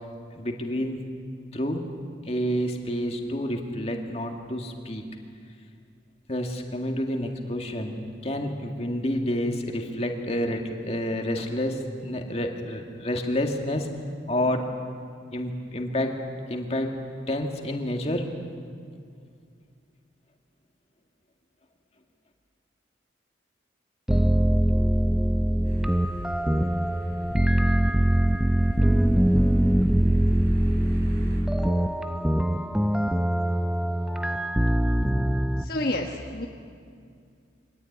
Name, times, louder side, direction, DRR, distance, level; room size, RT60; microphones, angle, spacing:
voice 1, 0.3-1.0 1.5-1.8 2.3-5.0 6.3-13.9 14.3-14.6 15.3-16.2 16.5-17.0 17.3-18.3, left 1 dB, 35° left, 3 dB, 2.2 m, -29 dB
sound 1, 24.1-35.6, equal, 5° right, 0.6 m, -23 dB
sound 2, 25.6-31.4, equal, 50° right, 4.9 m, -38 dB
voice 2, 35.6-36.5, left 1 dB, 50° left, 1 dB, 1.3 m, -29 dB
24.5 x 17.5 x 9.7 m, 2.3 s
head